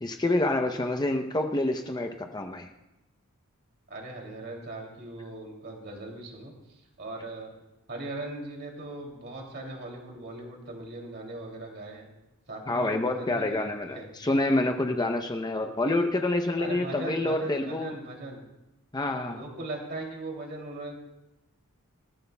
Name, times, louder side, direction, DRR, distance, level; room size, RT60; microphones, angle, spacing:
voice 1, 0.0-2.7 12.7-18.0 18.9-19.4, left 2 dB, 20° left, 5 dB, 0.7 m, -27 dB
voice 2, 3.9-7.5 7.9-12.1 12.5-14.1 16.6-18.4 19.2-21.0, right 2 dB, 50° right, 0 dB, 2.7 m, -39 dB
26.0 x 14.0 x 2.3 m, 0.95 s
head